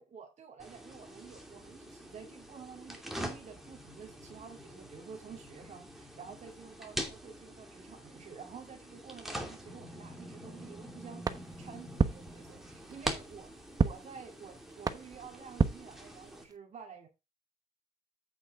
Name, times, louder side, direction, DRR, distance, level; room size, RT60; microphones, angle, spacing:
voice 1, 0.0-17.1, right 6 dB, 45° right, 2.6 m, -50 dB
sound 1, 0.6-16.4, equal, ahead, 2.7 m, -45 dB
sound 2, 11.2-16.6, right 4 dB, 20° right, 1.1 m, -34 dB
8.7 x 8.0 x 3.5 m
cardioid pair, 110°, 17 cm